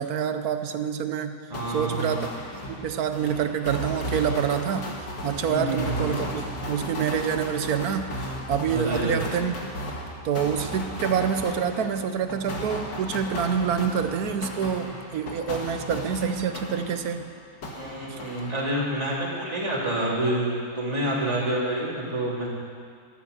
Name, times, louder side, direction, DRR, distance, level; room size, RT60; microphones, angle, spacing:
voice 1, 0.0-1.4 1.7-2.3 2.7-4.9 5.2-9.6 10.2-17.2 18.1-18.2, right 7 dB, 65° right, 9 dB, 1.2 m, -27 dB
sound 1, 1.5-17.3 17.6-19.0, left 1 dB, 90° left, 2.4 m, -35 dB
voice 2, 1.5-2.2 5.5-6.1 8.7-9.2 17.8-22.5, right 1 dB, 20° right, -5 dB, 2.9 m, -28 dB
13.5 x 11.0 x 6.8 m, 2.1 s
omnidirectional pair, 1.8 m